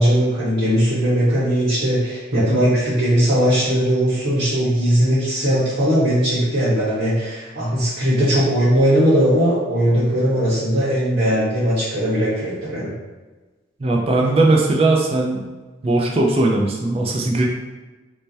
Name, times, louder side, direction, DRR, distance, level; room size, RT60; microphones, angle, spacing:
voice 1, 0.0-12.9, equal, 85° right, -11 dB, 1.3 m, -19 dB
voice 2, 13.8-15.4 15.8-17.4, right 2 dB, 30° right, -1 dB, 0.4 m, -18 dB
3.3 x 2.1 x 4.1 m, 1.2 s
head